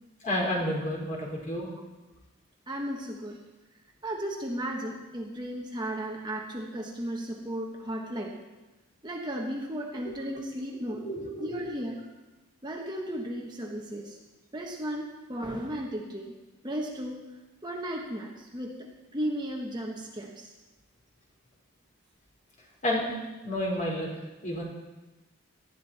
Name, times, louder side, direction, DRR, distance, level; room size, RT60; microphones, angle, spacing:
voice 1, 0.2-1.7 10.0-10.1 10.9-11.7 22.8-23.1 23.4-24.1 24.4-24.6, left 1 dB, 35° left, -3 dB, 4.1 m, -30 dB
voice 2, 2.7-3.4 4.0-8.4 9.0-11.0 11.4-12.0 12.6-14.2 14.5-16.3 16.6-17.2 17.6-20.5, right 1 dB, 20° right, 0 dB, 1.3 m, -35 dB
18.5 x 13.0 x 4.3 m, 1.1 s
head